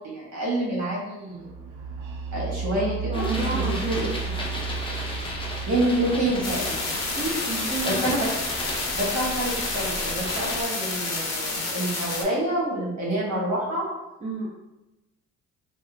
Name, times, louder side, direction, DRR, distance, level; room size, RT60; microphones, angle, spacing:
voice 1, 0.0-1.5 2.3-4.1 5.6-6.8 7.8-8.4 8.9-13.8, right 1 dB, 65° right, -5 dB, 1.4 m, -27 dB
sound 1, 1.4-9.1, right 5 dB, 85° right, 0.6 m, -34 dB
voice 2, 2.7-4.4 7.1-8.2 14.2-14.5, right 2 dB, 25° right, -3 dB, 0.6 m, -31 dB
sound 2, 3.1-10.6, left 1 dB, 15° left, 0.6 m, -34 dB
sound 3, 6.4-12.2, left 3 dB, 60° left, 0.8 m, -30 dB
3.4 x 2.0 x 2.8 m, 1.0 s
cardioid pair, 90°, 30 cm